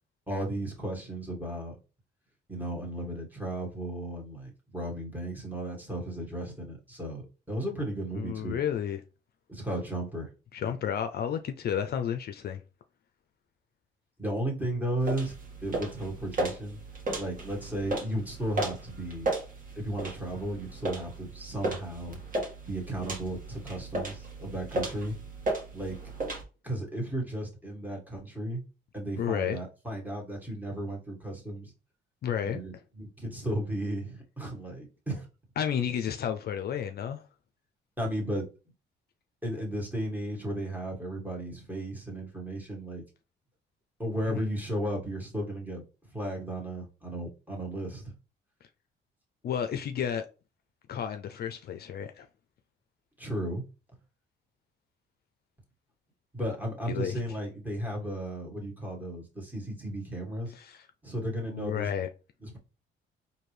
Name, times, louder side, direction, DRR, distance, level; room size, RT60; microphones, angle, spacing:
voice 1, 0.3-1.8 2.5-8.6 9.5-10.3 10.6-10.7 14.2-15.3 15.6-16.8 17.2-19.3 19.8-22.2 22.6-25.2 25.7-26.0 26.6-28.6 28.9-31.7 32.4-35.3 38.0-38.5 39.4-43.0 44.0-45.8 46.1-48.1 53.2-53.6 56.3-60.5 61.0-61.9 62.4-62.6, right 1 dB, 10° right, 1.6 m, -34 dB
voice 2, 8.1-9.0 10.5-12.6 29.2-29.6 32.2-32.6 35.6-37.2 44.3-44.4 49.4-50.3 50.9-52.3 56.9-57.2 60.5-60.8 61.4-62.1, left 8 dB, 55° left, 0.4 m, -31 dB
sound 1, 15.0-26.4, right 2 dB, 45° right, 1.4 m, -35 dB
4.3 x 2.7 x 3.2 m
cardioid pair, 90°, 20 cm